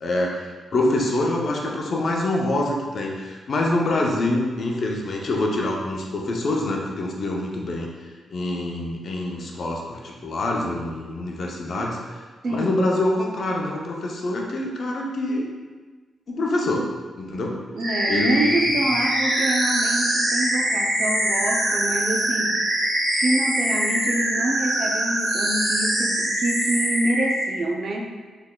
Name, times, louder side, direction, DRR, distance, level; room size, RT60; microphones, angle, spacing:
voice 1, 0.0-7.9 8.3-12.2 12.5-15.5 16.3-16.9 17.2-17.6 18.1-18.6, left 2 dB, 60° left, -1 dB, 0.6 m, -25 dB
voice 2, 12.4-12.9 17.7-22.6 23.1-28.2, right 1 dB, 50° right, 1 dB, 0.5 m, -26 dB
sound 1, 17.8-27.4, right 1 dB, 85° right, 1.5 m, -23 dB
3.8 x 3.3 x 2.3 m, 1.4 s
cardioid pair, 85°, 0 cm